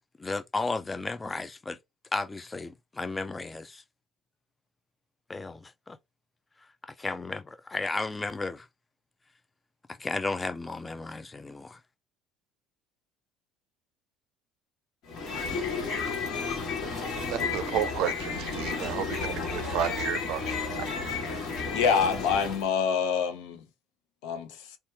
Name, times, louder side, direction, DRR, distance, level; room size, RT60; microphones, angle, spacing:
voice 1, 0.2-1.8 2.1-3.8 5.3-6.0 6.8-8.7 9.9-11.8, left 3 dB, 15° left, 0.3 m, -34 dB
sound 1, 15.1-22.7, left 4 dB, 60° left, 1.5 m, -32 dB
voice 2, 16.9-20.9, right 11 dB, 70° right, 0.5 m, -32 dB
voice 3, 21.7-23.6 24.2-24.5, left 6 dB, 85° left, 0.7 m, -26 dB
2.8 x 2.3 x 3.2 m
cardioid pair, 120°, 0 cm